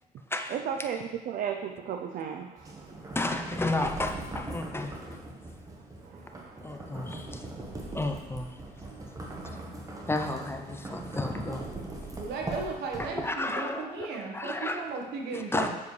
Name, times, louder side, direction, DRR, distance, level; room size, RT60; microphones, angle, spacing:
voice 1, 0.5-3.0 6.0-6.9, right 8 dB, 55° right, 5 dB, 0.5 m, -35 dB
sound 1, 2.6-13.6, right 2 dB, 20° right, 1.1 m, -40 dB
voice 2, 3.1-5.2 6.6-7.5 7.9-8.5 10.1-11.6 13.0-14.8 15.3-15.7, left 2 dB, 15° left, 5 dB, 0.5 m, -32 dB
voice 3, 12.1-15.7, right 4 dB, 80° right, 1 dB, 1.3 m, -36 dB
7.2 x 6.9 x 3.2 m, 1.1 s
cardioid pair, 110°, 17 cm